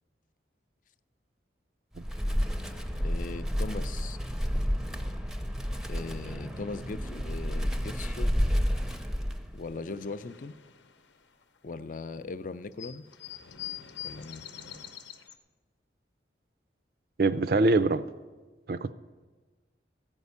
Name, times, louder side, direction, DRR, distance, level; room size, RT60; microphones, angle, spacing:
Wind, 1.9-9.7, equal, 5° right, 0.5 m, -30 dB
voice 1, 3.0-4.2 5.9-8.6 9.5-10.5 11.6-13.0 14.0-14.4, left 3 dB, 45° left, 0.4 m, -39 dB
sound 1, 9.0-9.1 9.3-11.8 12.2-12.3 12.5-15.4, left 10 dB, 80° left, 0.8 m, -44 dB
voice 2, 17.2-18.0 18.7-18.9, right 3 dB, 55° right, 0.4 m, -23 dB
14.0 x 5.4 x 8.2 m
head